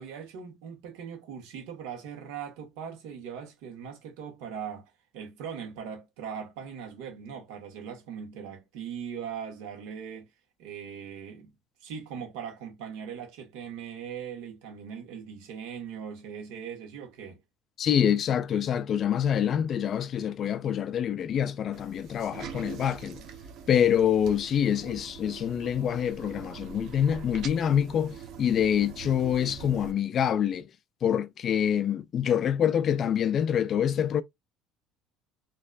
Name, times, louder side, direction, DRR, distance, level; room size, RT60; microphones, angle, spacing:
voice 1, 0.0-10.3 10.6-11.5 11.8-17.4, right 7 dB, 75° right, 1.8 m, -40 dB
voice 2, 17.8-23.2 23.7-30.7 31.0-34.2, left 9 dB, 30° left, 0.3 m, -26 dB
sound 1, 21.7-29.9, right 6 dB, 45° right, 1.0 m, -43 dB
4.2 x 3.0 x 2.5 m
cardioid pair, 180°, 0 cm